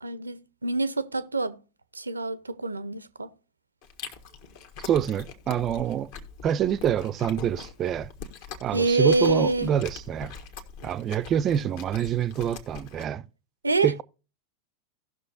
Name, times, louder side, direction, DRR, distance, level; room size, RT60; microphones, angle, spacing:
voice 1, 0.0-1.6 2.0-3.3 8.7-9.7 13.6-13.9, right 3 dB, 80° right, 0.6 m, -26 dB
Chewing mastication, 3.8-13.1, left 5 dB, 50° left, 1.4 m, -43 dB
voice 2, 4.8-6.1 6.4-8.1 8.6-10.3 10.8-13.3 13.8-14.0, right 9 dB, 30° right, 0.4 m, -26 dB
17.5 x 6.2 x 2.6 m
figure-of-eight pair, 90°, 0 cm